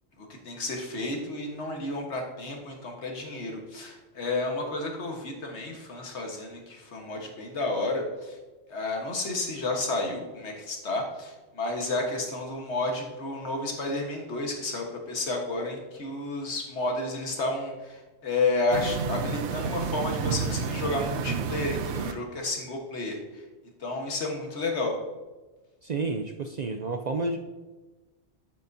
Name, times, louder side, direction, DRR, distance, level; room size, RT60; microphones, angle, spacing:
voice 1, 0.2-8.4 8.7-23.4 23.8-25.0, left 2 dB, 80° left, 2 dB, 1.7 m, -31 dB
sound 1, 18.7-22.1, right 6 dB, 90° right, 0.9 m, -30 dB
voice 2, 25.8-27.4, right 3 dB, 55° right, 5 dB, 0.5 m, -30 dB
8.5 x 8.0 x 2.7 m, 1.2 s
omnidirectional pair, 1.1 m